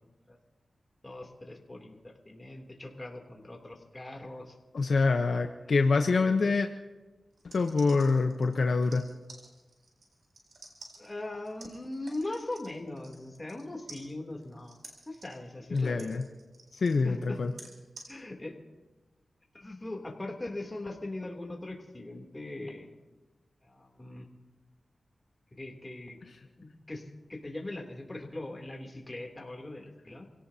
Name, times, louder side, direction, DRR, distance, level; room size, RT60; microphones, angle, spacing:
voice 1, 1.0-4.5 5.7-5.8 6.1-6.6 11.0-14.8 15.1-16.2 17.0-17.4 18.1-18.6 19.5-22.9 23.6-24.3 25.5-30.3, left 2 dB, 25° left, 1 dB, 3.1 m, -40 dB
voice 2, 4.7-6.7 7.4-9.0 15.7-16.2 16.7-17.5, left 4 dB, 75° left, 5 dB, 0.9 m, -26 dB
sound 1, 7.3-13.6 13.9-18.1, right 2 dB, 85° right, 3.9 m, -51 dB
28.5 x 17.0 x 2.9 m, 1.2 s
cardioid pair, 65°, 0 cm